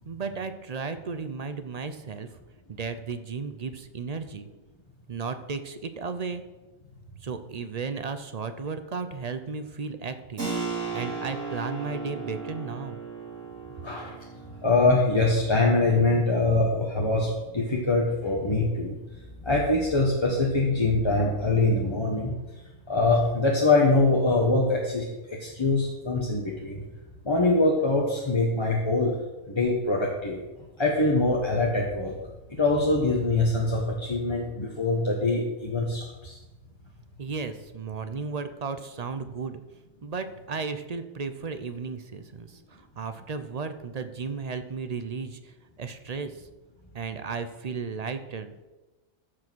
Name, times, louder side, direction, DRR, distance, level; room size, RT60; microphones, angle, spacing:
voice 1, 0.0-2.3 2.7-4.5 5.1-6.4 7.2-10.5 10.9-13.0 37.2-39.6 40.0-46.5 46.9-48.5, right 5 dB, 45° right, 10 dB, 0.5 m, -34 dB
Keyboard (musical), 10.4-20.7, right 4 dB, 60° right, 3.2 m, -38 dB
voice 2, 13.8-14.1 14.6-19.0 19.4-22.3 22.9-26.8 27.2-29.1 29.5-30.4 30.8-32.2 32.5-36.4, left 2 dB, 20° left, -2 dB, 1.2 m, -23 dB
14.0 x 4.9 x 6.1 m, 1.1 s
omnidirectional pair, 1.4 m